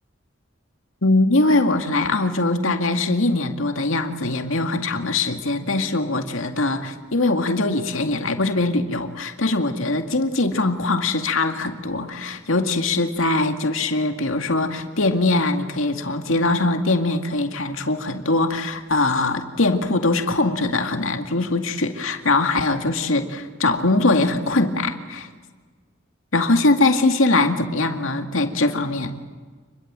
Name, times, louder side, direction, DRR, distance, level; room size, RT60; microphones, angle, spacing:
voice 1, 1.0-25.3 26.3-29.2, left 2 dB, 80° left, 6 dB, 2.2 m, -22 dB
28.0 x 22.0 x 7.6 m, 1.5 s
head